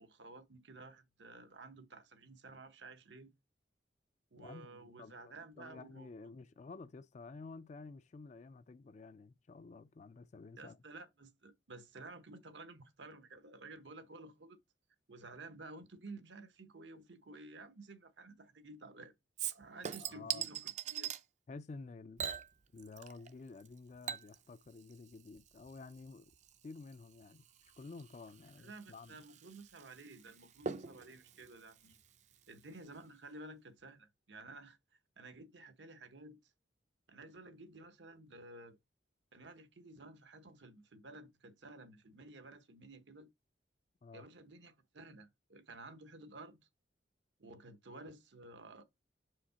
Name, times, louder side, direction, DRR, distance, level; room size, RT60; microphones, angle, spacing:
voice 1, 0.0-3.3 4.3-6.1 10.6-14.6 15.1-19.1 19.5-21.1 28.6-32.0 32.5-34.8 35.2-36.5 37.1-38.8 39.3-43.3 44.1-46.7 47.4-48.8, right 2 dB, 75° right, 1.0 m, -53 dB
voice 2, 4.4-10.8 20.0-20.5 21.5-22.2 22.7-26.3 26.6-29.2 44.0-44.3, left 3 dB, 40° left, 0.4 m, -51 dB
Chink clink / Liquid, 19.4-21.2 22.2-23.3 23.6-32.6 33.0-33.1, right 8 dB, 40° right, 0.5 m, -44 dB
5.0 x 3.7 x 5.6 m
head